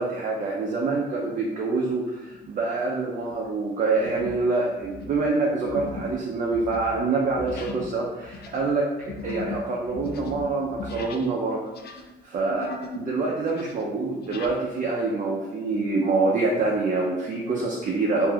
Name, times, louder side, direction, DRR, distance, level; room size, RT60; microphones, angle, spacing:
voice 1, 0.0-11.6 12.2-18.3, right 3 dB, 40° right, -2 dB, 0.5 m, -26 dB
sound 1, 2.3-2.7 3.2-3.4 4.0-4.5 4.8-11.4 11.7-13.1 13.4-14.6, left 4 dB, 55° left, 0.4 m, -38 dB
2.5 x 2.3 x 3.4 m, 1.1 s
cardioid pair, 90°, 20 cm